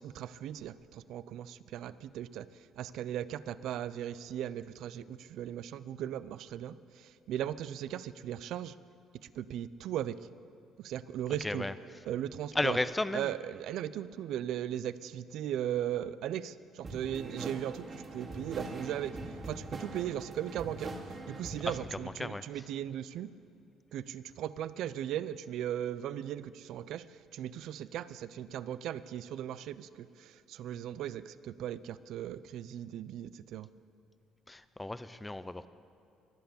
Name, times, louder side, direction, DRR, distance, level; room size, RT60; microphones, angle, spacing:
voice 1, 0.0-8.8 9.2-10.2 10.8-11.7 12.0-12.8 13.1-19.2 19.4-21.0 21.3-23.3 23.9-33.7, right 11 dB, 75° right, 16 dB, 0.5 m, -38 dB
voice 2, 12.5-13.3 21.9-22.4 34.5-35.7, left 2 dB, 10° left, 14 dB, 0.6 m, -34 dB
sound 1, 16.8-21.9, right 2 dB, 35° right, 2.3 m, -42 dB
23.0 x 8.0 x 7.0 m, 2.7 s
cardioid pair, 105°, 0 cm